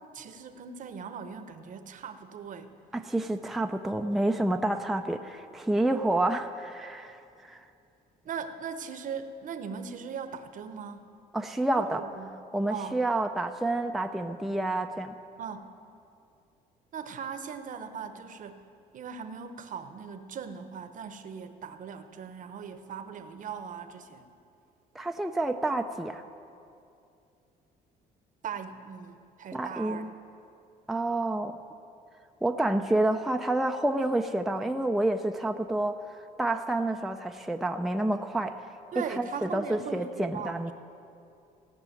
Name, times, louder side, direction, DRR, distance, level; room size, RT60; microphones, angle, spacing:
voice 1, 0.0-2.8 8.2-11.1 11.8-12.4 12.7-13.0 15.4-15.7 16.9-18.6 18.9-24.2 28.4-30.2 38.9-40.7, right 6 dB, 50° right, 9 dB, 0.9 m, -39 dB
voice 2, 2.9-7.6 11.3-12.0 12.5-15.1 24.9-26.2 29.5-30.1 30.9-31.5 32.4-36.0 36.4-38.6 39.2-40.7, right 2 dB, ahead, 5 dB, 0.5 m, -29 dB
17.0 x 6.1 x 9.1 m, 2.5 s
cardioid pair, 110°, 17 cm